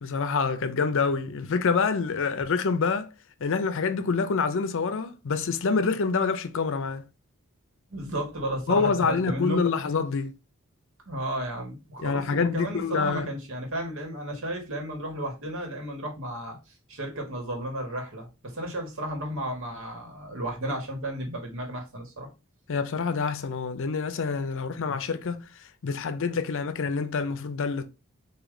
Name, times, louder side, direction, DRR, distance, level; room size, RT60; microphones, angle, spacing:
voice 1, 0.0-3.1 3.4-7.0 8.7-10.3 12.0-13.3 22.7-25.4 25.8-27.9, left 5 dB, 65° left, 0.5 m, -26 dB
voice 2, 7.9-9.6 11.0-22.3, right 1 dB, 65° right, 1.6 m, -33 dB
4.9 x 2.8 x 3.8 m
head